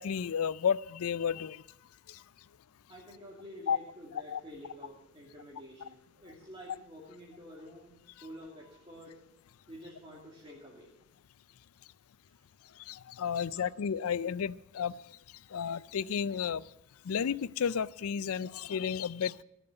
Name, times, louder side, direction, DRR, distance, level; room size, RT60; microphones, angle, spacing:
voice 1, 0.0-1.6 3.7-3.8 4.1-4.4 12.9-14.9 15.5-16.6 17.1-19.3, left 7 dB, 75° left, 20 dB, 0.4 m, -32 dB
voice 2, 2.9-9.2 9.7-10.9 13.5-13.6, equal, 25° right, -4 dB, 2.5 m, -49 dB
16.0 x 7.2 x 7.8 m, 0.81 s
head